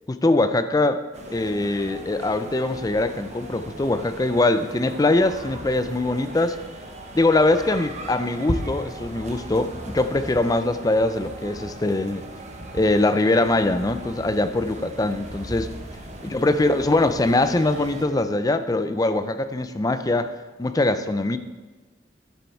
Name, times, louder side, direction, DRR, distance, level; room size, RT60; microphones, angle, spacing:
voice 1, 0.1-1.0 1.3-6.6 7.1-12.2 12.7-15.7 16.2-20.3 20.6-21.4, left 2 dB, 20° left, 11 dB, 0.4 m, -22 dB
sound 1, 1.1-18.1, right 1 dB, 40° right, 1.1 m, -37 dB
11.5 x 7.1 x 4.5 m, 1.3 s
head